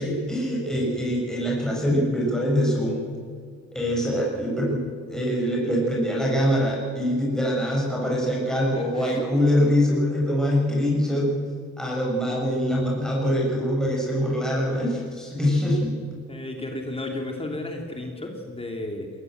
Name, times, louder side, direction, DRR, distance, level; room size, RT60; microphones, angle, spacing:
voice 1, 0.0-3.1 3.7-11.3 11.8-15.9, equal, ahead, -4 dB, 7.2 m, -24 dB
voice 2, 8.7-9.3 16.3-19.1, left 2 dB, 20° left, 2 dB, 2.9 m, -33 dB
21.5 x 19.5 x 8.0 m, 2.1 s
cardioid pair, 90°, 30 cm